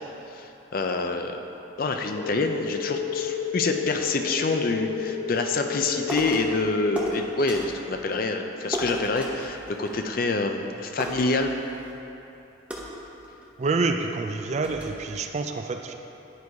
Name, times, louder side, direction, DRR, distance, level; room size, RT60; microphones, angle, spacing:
voice 1, 0.3-1.4 1.8-11.5, left 3 dB, 45° left, 5 dB, 0.5 m, -27 dB
sound 1, 2.1-7.1, left 7 dB, 75° left, 1.2 m, -32 dB
sound 2, 6.1-6.6 7.0-7.8 8.7-10.3 10.6-10.7 11.0-12.0 12.7-13.7 14.2-14.3 14.6-15.1, equal, 5° right, 0.7 m, -35 dB
voice 2, 13.6-15.9, right 3 dB, 35° right, 5 dB, 0.3 m, -27 dB
9.3 x 4.7 x 4.7 m, 2.9 s
head